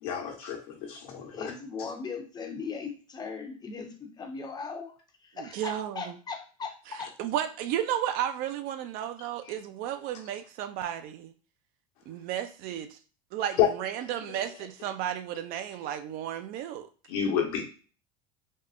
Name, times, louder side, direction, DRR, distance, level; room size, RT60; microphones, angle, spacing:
voice 1, 0.0-1.5 1.8-1.9 13.6-13.7 17.1-17.6, left 9 dB, 70° left, 1 dB, 1.0 m, -28 dB
voice 2, 1.3-4.9 5.2-6.7 7.0-7.1, left 5 dB, 20° left, 4 dB, 0.6 m, -38 dB
voice 3, 5.4-6.2 6.9-11.3 12.1-13.0 13.3-16.9, right 11 dB, 55° right, 10 dB, 0.4 m, -33 dB
3.5 x 2.0 x 2.4 m, 0.38 s
supercardioid pair, 115°, 19 cm